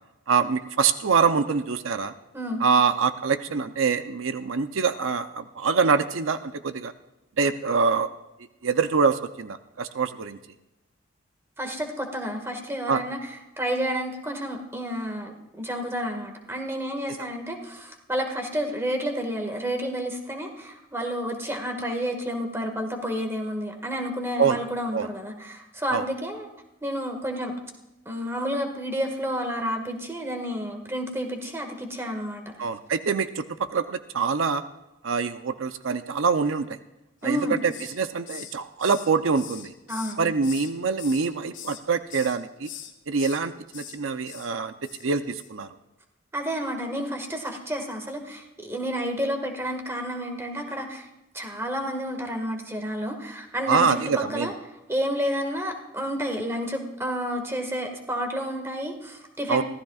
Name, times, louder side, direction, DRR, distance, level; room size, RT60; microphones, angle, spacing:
voice 1, 0.3-2.1 2.6-6.9 7.4-8.1 8.6-10.4 12.9-13.0 24.4-24.6 24.9-25.1 25.9-26.1 32.6-34.6 35.0-36.8 37.2-39.7 40.2-42.7 43.1-45.7 53.7-54.5 59.5-59.6, right 5 dB, 85° right, 10 dB, 0.6 m, -25 dB
voice 2, 2.3-2.7 11.6-26.5 26.8-27.5 28.1-32.5 37.2-37.6 39.9-40.3 46.3-51.1 51.3-54.5 54.9-59.6, equal, 15° right, 3 dB, 1.8 m, -30 dB
Hiss, 37.2-38.0 38.3-40.7 41.0-41.8 42.1-42.4 42.6-43.4 43.7-44.0 44.2-44.5 44.8-45.1 45.3-45.5, left 10 dB, 70° left, 1.8 m, -42 dB
24.5 x 16.0 x 2.4 m, 0.97 s
head